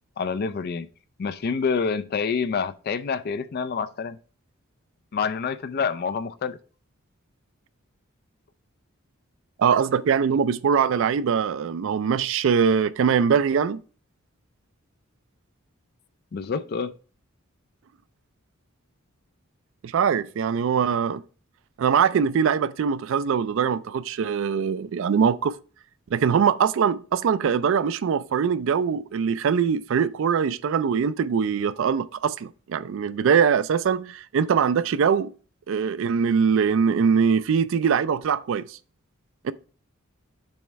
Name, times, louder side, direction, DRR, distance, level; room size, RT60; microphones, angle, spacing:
voice 1, 0.2-0.9 1.2-4.2 5.1-6.6 16.3-16.9, left 5 dB, 45° left, 0.4 m, -27 dB
voice 2, 9.6-13.8 19.8-21.2 21.8-25.5 26.1-35.3 35.7-38.8 39.4-39.5, right 6 dB, 65° right, 0.3 m, -22 dB
7.0 x 3.1 x 4.5 m
head